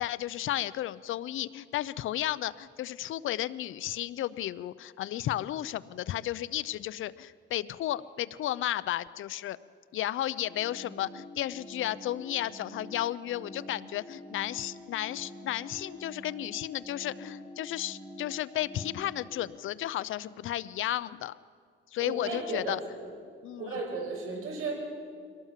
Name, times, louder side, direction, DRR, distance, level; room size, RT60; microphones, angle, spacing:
voice 1, 0.0-9.6 9.9-21.3 21.9-22.8 23.4-23.8, left 13 dB, 70° left, 17 dB, 0.6 m, -33 dB
sound 1, 10.4-19.4, left 1 dB, 25° right, 5.8 m, -47 dB
voice 2, 22.0-23.1 23.6-24.7, right 3 dB, 80° right, 1 dB, 5.8 m, -35 dB
23.5 x 18.0 x 7.5 m, 2.1 s
cardioid pair, 150°, 21 cm